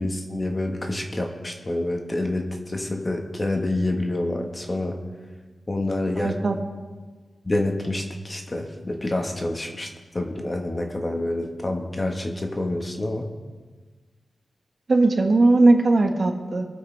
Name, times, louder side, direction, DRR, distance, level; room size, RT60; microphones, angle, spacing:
voice 1, 0.0-5.0 5.7-6.4 7.4-13.3, left 1 dB, 30° left, 2 dB, 1.4 m, -27 dB
voice 2, 6.2-6.9 14.9-16.6, right 2 dB, 50° right, 4 dB, 1.4 m, -19 dB
23.0 x 7.9 x 3.4 m, 1.4 s
cardioid pair, 65°, 0 cm